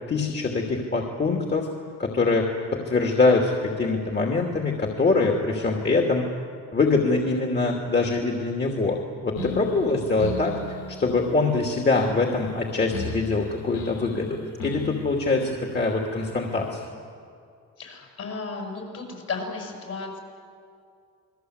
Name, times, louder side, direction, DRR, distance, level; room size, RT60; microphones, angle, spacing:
voice 1, 0.1-1.7 2.0-6.2 6.7-16.8, left 3 dB, 35° left, 1 dB, 2.8 m, -24 dB
sound 1, 9.4-16.9, left 1 dB, 85° left, 4.0 m, -38 dB
voice 2, 17.8-20.2, left 4 dB, 55° left, 1 dB, 7.6 m, -34 dB
29.0 x 21.5 x 8.2 m, 2.3 s
cardioid pair, 90°, 30 cm